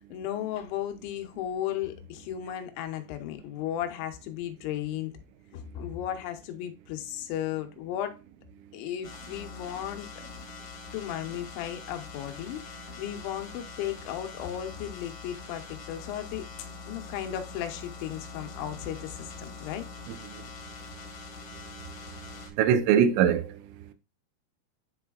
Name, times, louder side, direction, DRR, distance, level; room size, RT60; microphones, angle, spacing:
voice 1, 0.1-5.1 5.5-8.2 8.7-10.1 10.9-19.9, left 11 dB, 80° left, 3.1 m, -35 dB
sound 1, 9.0-22.5, left 5 dB, 60° left, 1.6 m, -44 dB
voice 2, 20.1-23.9, right 8 dB, 85° right, 3.0 m, -27 dB
10.5 x 4.3 x 2.3 m
omnidirectional pair, 5.3 m